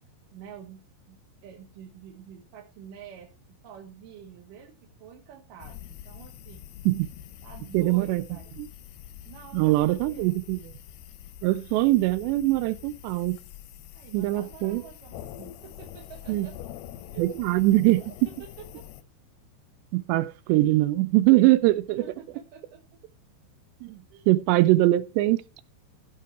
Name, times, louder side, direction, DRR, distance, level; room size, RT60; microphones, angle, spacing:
voice 1, 0.3-1.2 1.4-3.3 3.6-6.6 7.4-8.6 9.3-10.4 13.9-15.2 15.6-16.6 17.1-18.8 21.9-22.8 24.1-24.3, right 8 dB, 60° right, 2.7 m, -47 dB
sound 1, 5.6-19.0, left 12 dB, 75° left, 2.4 m, -45 dB
voice 2, 7.7-8.2 8.6-8.7 9.5-10.6 11.4-13.4 14.1-14.8 16.3-16.5 17.2-18.0 19.9-22.0 23.8-24.0 24.3-25.4, right 17 dB, 85° right, 2.8 m, -22 dB
15.5 x 5.7 x 4.6 m
omnidirectional pair, 5.1 m